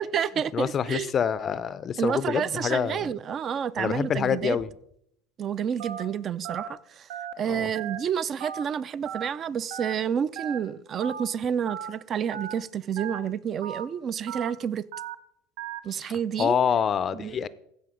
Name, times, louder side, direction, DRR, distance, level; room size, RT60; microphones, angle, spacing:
voice 1, 0.0-1.1 2.0-4.6 5.4-7.1 7.4-14.8 15.8-16.5 17.2-17.4, right 8 dB, 35° right, 0.4 m, -29 dB
voice 2, 0.5-3.1 3.8-4.7 7.4-7.7 15.9-16.1 16.4-17.5, left 8 dB, 35° left, 0.4 m, -26 dB
Telephone, 5.8-6.0 6.4-6.7 7.1-7.3 7.7-8.0 8.4-8.6 9.0-9.3 9.7-9.9 10.4-10.6 11.0-11.2 11.7-11.9 12.3-12.5 13.0-13.2 13.6-13.8 14.3-14.5 14.9-15.1 15.6-15.8, right 9 dB, 75° right, 0.8 m, -36 dB
15.0 x 5.3 x 5.0 m
supercardioid pair, 110°, 0 cm